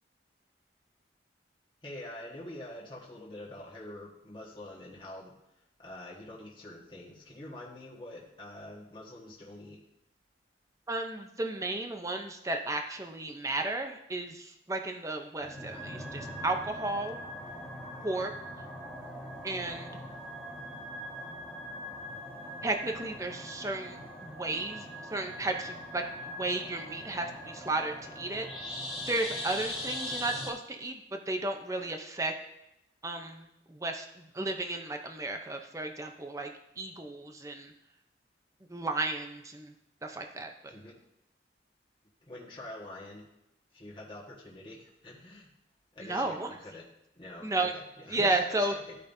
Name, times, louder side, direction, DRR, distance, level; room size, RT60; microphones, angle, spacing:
voice 1, 1.8-5.3 5.8-9.8 40.7-40.9 42.2-43.2 43.7-45.5 45.9-46.9 47.2-49.0, left 1 dB, 25° left, -5 dB, 1.4 m, -46 dB
voice 2, 10.9-17.2 18.0-18.3 19.4-19.9 22.6-24.9 25.1-28.5 29.0-32.3 33.0-34.1 34.3-36.5 36.8-37.7 38.7-39.7 40.0-40.5 46.1-46.5 47.4-47.7 48.1-48.7, right 2 dB, 15° right, 4 dB, 0.6 m, -33 dB
sound 1, 15.4-30.5, left 1 dB, 5° left, 1.6 m, -41 dB
13.5 x 5.2 x 2.7 m, 0.87 s
head